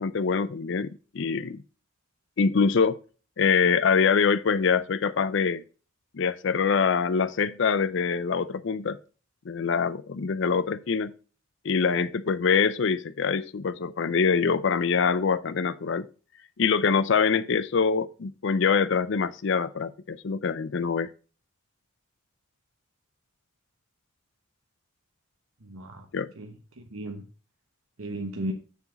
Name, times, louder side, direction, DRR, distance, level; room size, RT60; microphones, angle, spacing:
voice 1, 0.0-1.6 2.4-3.0 3.4-5.6 6.1-9.0 9.5-11.1 11.6-16.1 16.6-21.1 26.1-26.3, left 5 dB, 60° left, 0.5 m, -24 dB
voice 2, 25.6-26.0 26.4-27.2 28.0-28.5, right 1 dB, 85° right, 1.2 m, -35 dB
7.0 x 6.9 x 4.0 m
head